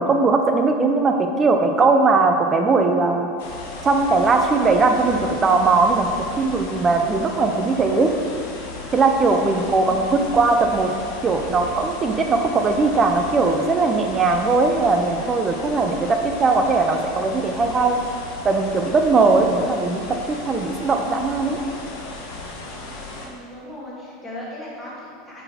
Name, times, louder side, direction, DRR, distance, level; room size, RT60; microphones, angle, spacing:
voice 1, 0.0-3.3 3.8-8.1 8.9-10.9 11.2-18.0 18.4-21.6, right 3 dB, 15° right, 4 dB, 0.4 m, -19 dB
sound 1, 3.4-23.3, left 2 dB, 75° left, 1.3 m, -35 dB
voice 2, 23.2-25.4, left 1 dB, 5° left, -7 dB, 1.4 m, -38 dB
7.7 x 4.1 x 4.2 m, 2.3 s
supercardioid pair, 170°, 0 cm